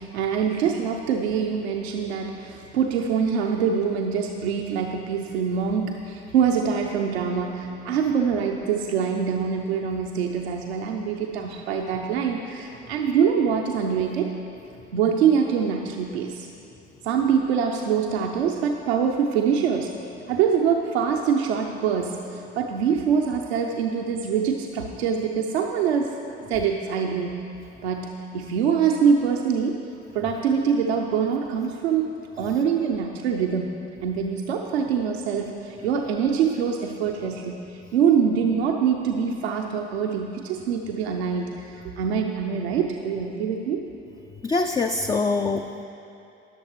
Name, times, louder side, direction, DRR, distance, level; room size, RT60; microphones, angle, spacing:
voice 1, 0.0-14.3 14.9-16.5 17.0-19.9 20.3-26.2 26.5-27.4 27.8-29.8 30.1-32.1 32.4-43.8, right 7 dB, 70° right, 2 dB, 0.6 m, -24 dB
voice 2, 44.4-45.8, left 3 dB, 15° left, 4 dB, 0.3 m, -25 dB
20.0 x 7.0 x 3.1 m, 2.9 s
figure-of-eight pair, 50°, 33 cm